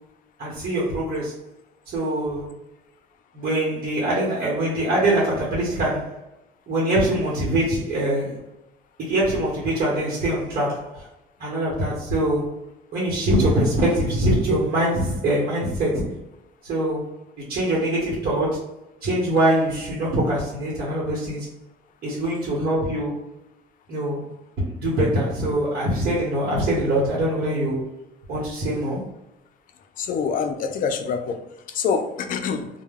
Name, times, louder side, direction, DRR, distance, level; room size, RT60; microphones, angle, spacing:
voice 1, 0.4-1.3 1.9-2.5 3.3-6.2 6.7-8.4 9.0-11.1 11.4-12.6 12.9-16.1 16.6-17.1 17.4-18.7 19.0-21.5 22.0-23.2 23.9-24.3 24.6-27.9 28.3-29.0, right 1 dB, 60° right, -5 dB, 0.9 m, -23 dB
voice 2, 30.0-31.4 31.7-32.7, left 6 dB, 55° left, 7 dB, 0.4 m, -25 dB
2.2 x 2.1 x 3.3 m, 0.89 s
cardioid pair, 110°, 17 cm